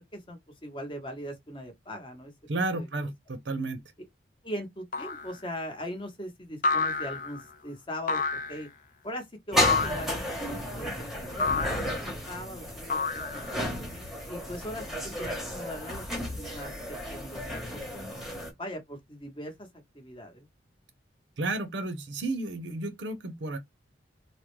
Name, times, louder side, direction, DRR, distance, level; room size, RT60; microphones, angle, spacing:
voice 1, 0.0-2.3 2.7-2.9 4.4-8.7 9.0-10.2 10.5-13.7 14.3-14.9 15.2-18.0 18.6-19.7 19.9-20.5, equal, 25° left, 0.9 m, -40 dB
voice 2, 2.5-3.8 21.4-23.6, right 2 dB, 70° right, 0.7 m, -32 dB
sound 1, 4.9-5.3 6.6-7.4 8.1-8.7 9.6-10.1 11.4-11.9 12.9-13.6, left 4 dB, 45° left, 0.4 m, -29 dB
sound 2, 9.5-18.5, left 1 dB, ahead, 0.9 m, -33 dB
3.7 x 2.1 x 3.0 m
head